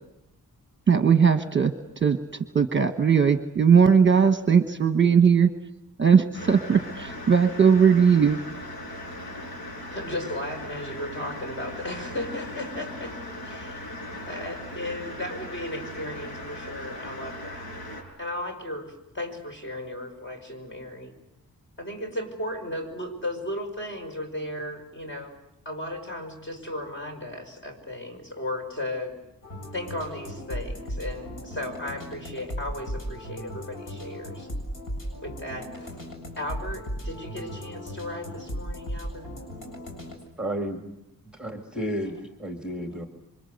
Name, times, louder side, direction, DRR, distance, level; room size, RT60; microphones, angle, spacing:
voice 1, 0.9-1.7 2.0-2.2 2.5-5.5 6.0-8.4, right 6 dB, 30° right, 8 dB, 1.2 m, -19 dB
sound 1, 6.3-18.0, left 1 dB, 90° left, 6.5 m, -38 dB
voice 2, 9.9-13.2 13.4-13.9 14.3-17.7 18.2-21.1 21.8-25.4 25.7-29.2 29.7-34.5 35.2-36.0 36.4-39.3, left 1 dB, 30° left, 4 dB, 5.6 m, -35 dB
sound 2, 29.4-40.2, equal, 60° left, 7.4 m, -36 dB
voice 3, 40.4-40.9 41.3-43.1, equal, 5° right, 5 dB, 2.0 m, -32 dB
27.5 x 25.0 x 8.0 m, 0.84 s
wide cardioid pair, 155°, 36 cm